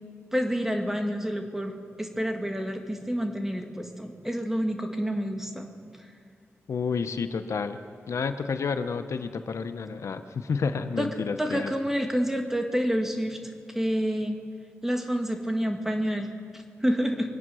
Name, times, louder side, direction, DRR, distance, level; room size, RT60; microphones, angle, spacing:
voice 1, 0.3-5.7 11.0-11.1 11.4-13.4 13.7-14.4 14.8-17.3, equal, 5° right, 4 dB, 1.7 m, -28 dB
voice 2, 6.7-7.8 8.1-11.7, left 5 dB, 70° left, 9 dB, 0.7 m, -30 dB
24.0 x 8.5 x 6.2 m, 2.2 s
cardioid pair, 65°, 5 cm